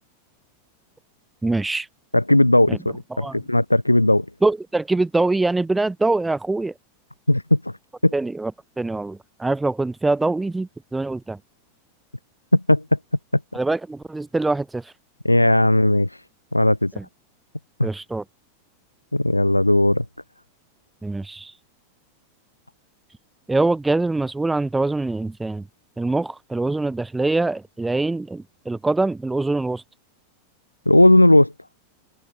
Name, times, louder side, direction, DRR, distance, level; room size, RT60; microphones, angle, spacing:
voice 1, 1.4-1.9 2.7-2.8 3.1-3.4 4.4-6.7 8.1-8.5 8.8-11.4 13.5-14.9 17.0-17.1 17.8-18.2 21.0-21.5 23.5-25.6 26.0-29.8, right 2 dB, 10° right, 1.9 m, -24 dB
voice 2, 2.1-4.2 7.3-7.7 8.0-8.1 12.5-13.0 15.2-16.2 16.5-16.9 17.8-17.9 19.1-20.0 30.8-31.5, left 1 dB, 85° left, 3.1 m, -17 dB
figure-of-eight pair, 90°, 0 cm